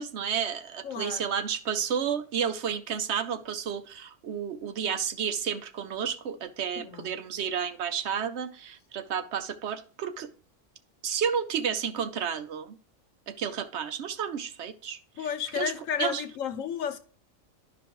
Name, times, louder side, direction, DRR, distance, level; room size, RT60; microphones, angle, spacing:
voice 1, 0.0-10.3 11.0-12.8 13.3-15.7 16.0-16.2, right 7 dB, 65° right, 0.9 m, -31 dB
voice 2, 0.8-1.3 6.8-7.1 15.2-17.0, left 8 dB, 85° left, 1.2 m, -32 dB
11.5 x 5.1 x 3.0 m
omnidirectional pair, 1.3 m